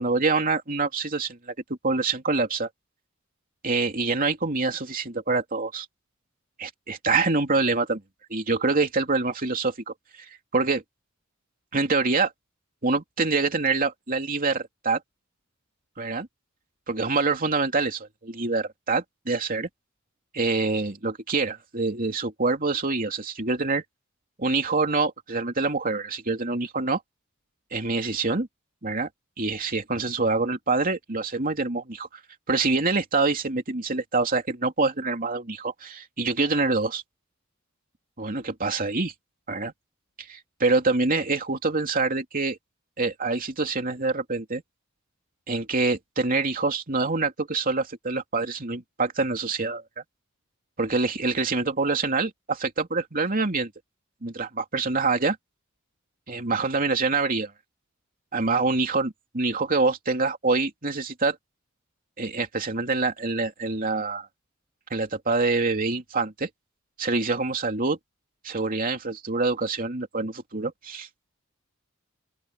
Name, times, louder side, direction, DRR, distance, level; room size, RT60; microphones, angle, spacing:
voice 1, 0.0-1.5 1.8-2.7 3.6-5.9 6.6-8.0 8.3-10.3 10.5-10.8 11.7-12.3 12.8-15.0 16.0-16.3 16.9-19.7 20.3-23.8 24.4-27.0 27.7-28.5 28.8-29.1 29.4-32.2 32.5-37.0 38.2-39.1 39.5-39.7 40.3-42.6 43.0-44.6 45.5-49.8 50.8-53.7 54.2-55.4 56.3-57.5 58.3-61.4 62.2-64.3 64.9-66.5 67.0-68.0 68.4-71.1, right 3 dB, 45° right, 2.9 m, -25 dB
open air
head